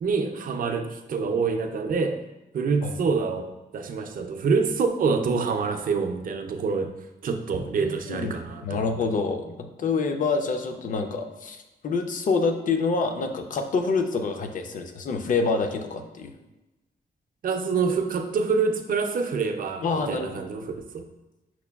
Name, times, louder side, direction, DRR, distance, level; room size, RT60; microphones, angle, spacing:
voice 1, 0.0-2.2 2.5-6.9 7.2-8.9 17.4-21.1, right 5 dB, 55° right, 6 dB, 0.4 m, -26 dB
voice 2, 7.8-8.3 8.6-16.3 19.8-20.3, left 4 dB, 50° left, 6 dB, 0.4 m, -27 dB
5.8 x 2.2 x 2.2 m, 1.0 s
wide cardioid pair, 115°, 17 cm